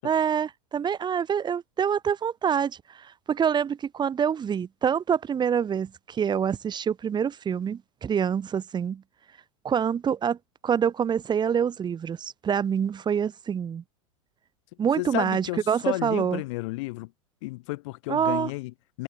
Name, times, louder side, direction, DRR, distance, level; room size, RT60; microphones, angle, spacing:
voice 1, 0.0-9.0 9.6-10.4 10.6-13.8 14.8-16.4 18.1-18.5, right 7 dB, 25° right, 2.0 m, -26 dB
voice 2, 15.0-17.1 17.4-19.0, left 23 dB, 60° left, 2.8 m, -32 dB
hypercardioid pair, 95°, 17 cm